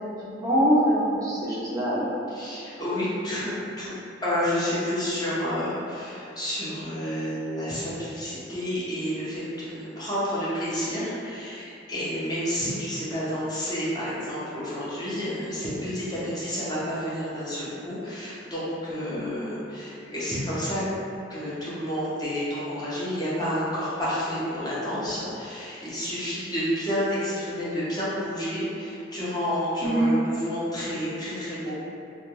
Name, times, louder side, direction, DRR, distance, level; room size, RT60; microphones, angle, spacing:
voice 1, 0.2-2.1 19.1-19.4 29.8-30.1, equal, 20° right, -10 dB, 0.4 m, -24 dB
voice 2, 2.3-3.9 4.2-20.8 21.3-31.7, equal, 20° left, -10 dB, 0.6 m, -30 dB
2.4 x 2.1 x 3.0 m, 2.6 s
head